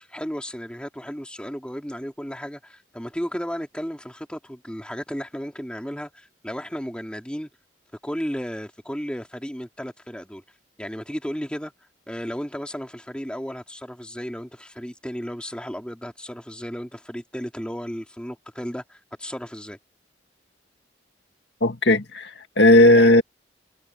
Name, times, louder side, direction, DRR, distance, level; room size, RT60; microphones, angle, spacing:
voice 1, 0.0-7.5 8.0-10.4 10.8-11.7 12.1-19.8, equal, 5° left, 2.8 m, -34 dB
voice 2, 21.6-23.2, left 1 dB, 65° left, 2.1 m, -16 dB
head